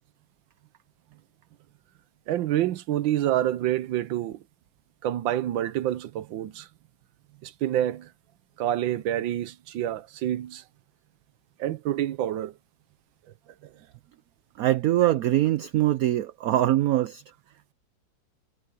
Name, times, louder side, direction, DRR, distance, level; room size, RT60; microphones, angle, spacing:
voice 1, 2.3-4.4 5.0-6.7 7.4-8.1 8.6-10.6 11.6-12.5, right 12 dB, 90° right, 1.5 m, -27 dB
voice 2, 14.6-17.2, right 14 dB, 70° right, 0.9 m, -23 dB
omnidirectional pair, 2.0 m